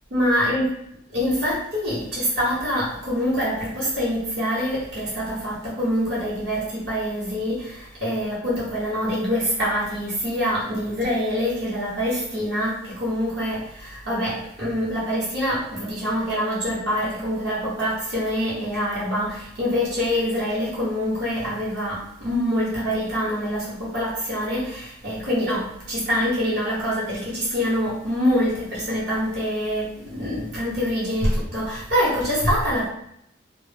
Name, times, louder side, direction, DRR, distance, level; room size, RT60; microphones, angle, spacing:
voice 1, 0.1-0.7 1.1-32.9, equal, 55° right, -8 dB, 0.8 m, -25 dB
2.0 x 2.0 x 3.2 m, 0.75 s
head